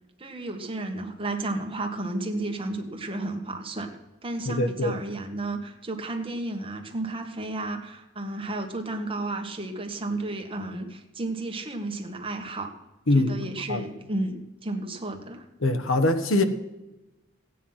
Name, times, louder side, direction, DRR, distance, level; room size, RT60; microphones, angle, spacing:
voice 1, 0.2-3.9 4.2-12.7 13.1-15.4, right 2 dB, 25° right, 1.7 m, -32 dB
voice 2, 4.5-5.0 13.1-13.4 13.7-13.8 15.6-16.4, left 2 dB, 75° left, 1.2 m, -23 dB
15.5 x 9.5 x 5.8 m
head